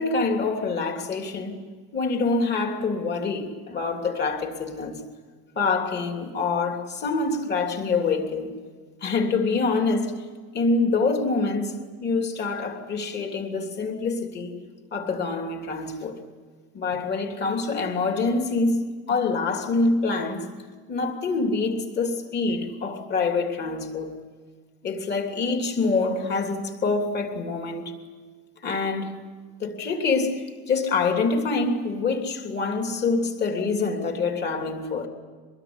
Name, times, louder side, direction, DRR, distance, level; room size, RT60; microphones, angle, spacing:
voice 1, 0.0-1.6 1.9-5.1 5.5-8.5 9.0-10.2 10.5-14.6 14.9-16.2 16.7-20.5 20.9-24.2 24.8-28.0 28.6-29.1 29.6-35.1, left 3 dB, 30° left, 3.2 m, -26 dB
24.5 x 21.5 x 9.7 m
cardioid pair, 170°, 33 cm